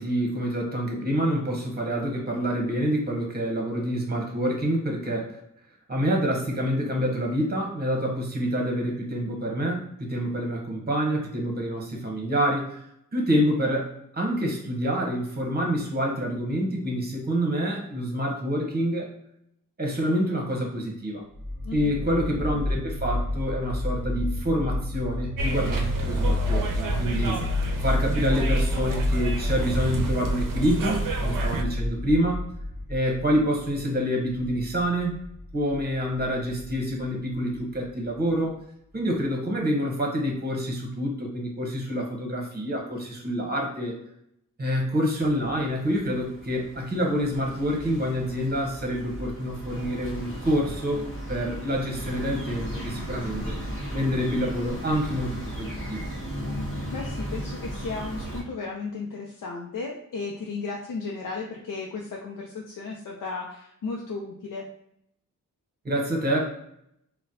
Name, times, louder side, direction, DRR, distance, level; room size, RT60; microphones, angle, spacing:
voice 1, 0.0-5.4 5.9-12.8 13.1-19.1 19.8-21.2 21.7-27.4 27.8-32.4 32.9-35.2 35.5-38.6 38.9-44.0 44.6-53.6 53.9-56.0 65.8-66.5, equal, 30° right, 0 dB, 0.9 m, -27 dB
sound 1, 21.3-38.3, left 1 dB, 5° right, 1.1 m, -31 dB
voice 2, 21.6-22.1 56.9-64.7, left 4 dB, 75° left, -1 dB, 0.5 m, -35 dB
sound 2, 25.4-31.6, right 1 dB, 75° right, 0.5 m, -28 dB
sound 3, 45.2-58.4, equal, 40° left, 1.0 m, -36 dB
3.9 x 2.1 x 2.6 m, 0.75 s
wide cardioid pair, 105°, 32 cm